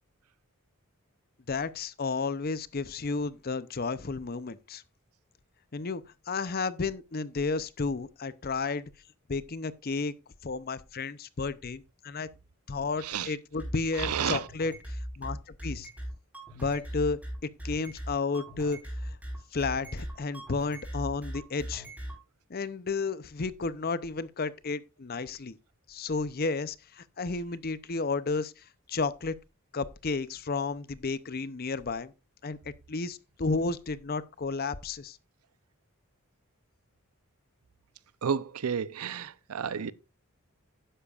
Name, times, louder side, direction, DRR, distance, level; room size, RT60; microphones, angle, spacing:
voice 1, 1.5-4.8 5.7-8.9 9.3-10.1 10.4-12.3 12.7-15.9 16.6-17.2 17.6-19.2 19.5-21.8 22.5-25.6 25.9-28.5 28.9-29.3 29.7-32.1 32.4-35.2, left 4 dB, 45° left, 0.6 m, -32 dB
voice 2, 13.0-13.3 13.9-14.4 38.2-39.9, right 7 dB, 85° right, 0.6 m, -31 dB
sound 1, 13.6-22.2, equal, 5° right, 4.6 m, -39 dB
12.0 x 10.0 x 2.4 m
head